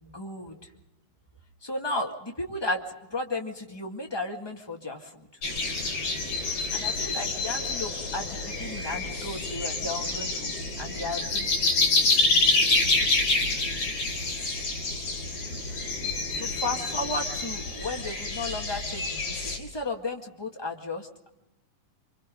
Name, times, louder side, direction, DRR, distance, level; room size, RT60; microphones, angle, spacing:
voice 1, 0.0-0.6 1.6-5.1 6.7-11.7 16.4-21.3, left 2 dB, 10° left, 1 dB, 1.4 m, -34 dB
sound 1, 5.4-19.6, left 3 dB, 65° left, 4.7 m, -27 dB
29.0 x 25.0 x 3.9 m, 0.93 s
omnidirectional pair, 3.6 m